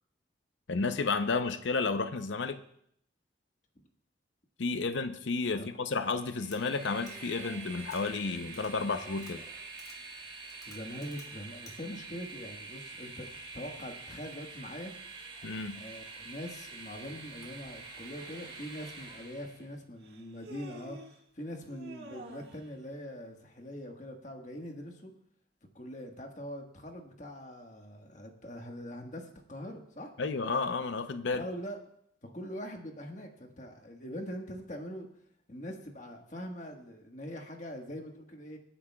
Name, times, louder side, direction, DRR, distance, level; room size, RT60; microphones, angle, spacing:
voice 1, 0.7-2.6 4.6-9.4 15.4-15.8 30.2-31.4, left 4 dB, 85° left, 10 dB, 0.6 m, -32 dB
Train, 6.2-19.7, right 4 dB, 30° right, 2.4 m, -46 dB
sound 1, 6.5-6.6 7.1-7.2 7.8-8.0 8.5-8.7 9.2-9.3 9.8-10.0 10.5-11.3 11.7-11.8, left 3 dB, 20° left, 2.2 m, -53 dB
voice 2, 10.7-13.3 13.5-15.0 15.7-25.1 25.7-30.1 31.3-31.8 32.2-35.1 35.5-38.6, equal, 40° left, 2 dB, 1.4 m, -43 dB
Human voice, 20.0-21.2 21.7-22.7, right 1 dB, 65° right, 1.7 m, -48 dB
25.0 x 9.9 x 2.3 m, 0.69 s
head